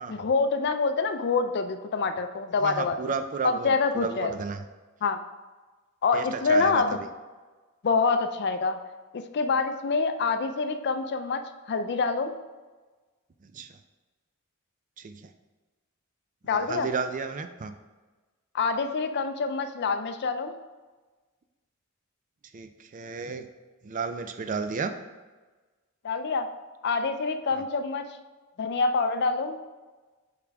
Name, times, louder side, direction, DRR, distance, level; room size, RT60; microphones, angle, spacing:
voice 1, 0.1-3.0 3.4-4.4 5.0-5.2 6.0-7.0 7.8-8.8 9.1-12.3 16.4-16.9 18.5-20.5 26.0-26.5 26.8-28.1 28.6-29.6, left 4 dB, 50° left, 9 dB, 0.4 m, -26 dB
voice 2, 2.6-4.6 6.1-7.1 13.4-13.7 15.0-15.3 16.4-17.7 22.5-23.5 23.8-24.9 27.5-27.6, right 5 dB, 35° right, 9 dB, 0.4 m, -33 dB
7.2 x 4.9 x 3.4 m, 1.3 s
head